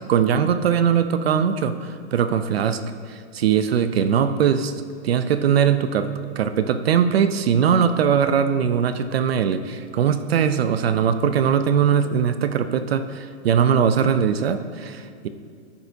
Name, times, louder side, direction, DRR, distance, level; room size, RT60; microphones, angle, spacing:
voice 1, 0.1-2.8 3.1-4.7 5.0-15.3, right 7 dB, 55° right, 11 dB, 0.5 m, -21 dB
13.0 x 6.6 x 2.7 m, 2.2 s
hypercardioid pair, 170°, 36 cm